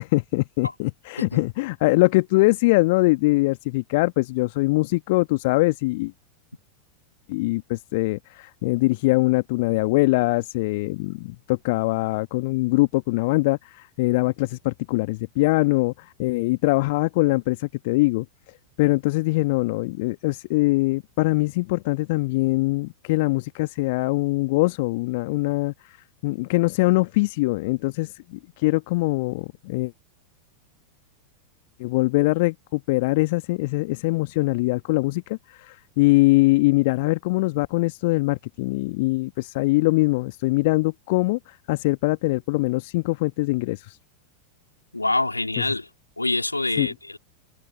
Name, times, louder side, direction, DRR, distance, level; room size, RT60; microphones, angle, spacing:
voice 1, 0.0-6.1 7.3-18.2 18.8-25.7 26.2-29.9 31.8-44.0 46.8-46.9, left 23 dB, 50° left, 1.6 m, -22 dB
voice 2, 44.9-45.9 46.2-47.2, left 2 dB, 85° left, 3.1 m, -25 dB
figure-of-eight pair, 90°, 0 cm